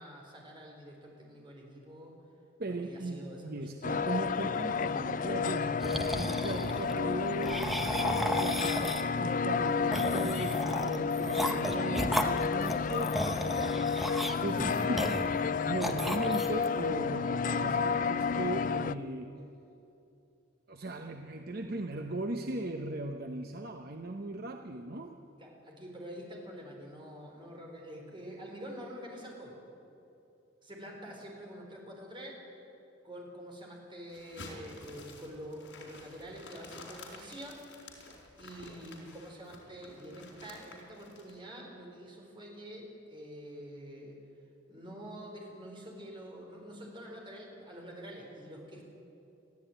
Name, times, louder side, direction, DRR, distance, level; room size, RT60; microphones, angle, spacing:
voice 1, 0.0-2.1 2.7-3.4 14.7-15.0 25.4-29.6 30.6-32.4 33.0-37.6 38.4-44.2 44.7-48.9, equal, 25° right, 0 dB, 4.4 m, -46 dB
voice 2, 2.6-13.8 14.4-15.1 15.7-19.3 20.7-25.1, right 2 dB, 50° right, 5 dB, 0.9 m, -38 dB
sound 1, 3.8-18.9, left 5 dB, 40° left, 0.4 m, -31 dB
sound 2, 5.8-6.9 7.4-9.2 9.9-15.5 15.8-16.7, equal, ahead, 0.9 m, -34 dB
sound 3, 34.1-41.4, left 3 dB, 75° left, 4.3 m, -51 dB
21.5 x 14.5 x 9.1 m, 2.8 s
head